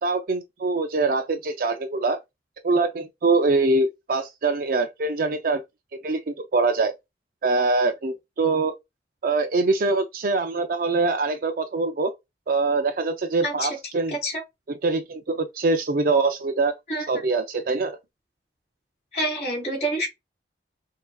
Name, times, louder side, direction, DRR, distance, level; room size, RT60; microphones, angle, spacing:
voice 1, 0.0-2.2 2.6-5.6 5.9-6.9 7.4-8.7 9.2-12.1 12.5-14.2 14.8-16.7 17.1-18.0, right 3 dB, 50° right, 0.4 m, -23 dB
voice 2, 14.1-14.4 16.9-17.2 19.1-20.1, right 1 dB, 40° left, 2.8 m, -27 dB
5.5 x 2.7 x 2.3 m
head